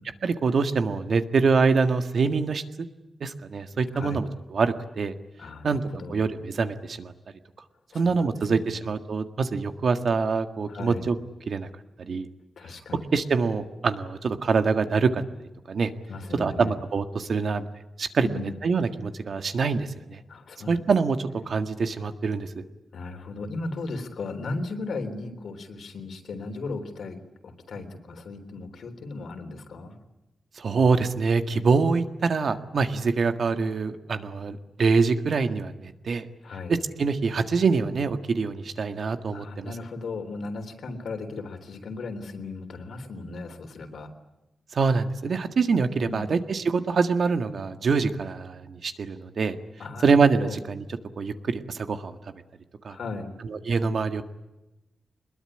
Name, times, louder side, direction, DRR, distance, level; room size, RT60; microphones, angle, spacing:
voice 1, 0.2-2.9 3.2-5.1 5.6-5.8 6.1-7.1 7.9-11.2 11.5-11.7 12.0-12.3 13.1-15.2 15.7-15.9 16.3-17.7 18.0-18.3 18.6-20.2 20.7-22.6 30.6-36.3 37.0-39.7 44.7-49.6 50.0-50.8 51.2-52.2 52.8-53.0 53.5-54.2, right 4 dB, 60° right, 8 dB, 1.8 m, -25 dB
voice 2, 3.9-4.2 5.4-6.2 7.9-8.1 8.7-8.8 10.7-11.0 12.6-13.1 16.1-16.7 18.2-18.6 20.3-20.8 22.9-27.2 27.4-30.0 36.4-36.8 39.3-44.1 46.0-46.3 49.8-50.6 52.9-53.3, left 3 dB, 75° left, 6 dB, 3.6 m, -36 dB
23.5 x 21.5 x 9.9 m, 0.98 s
wide cardioid pair, 135°, 0 cm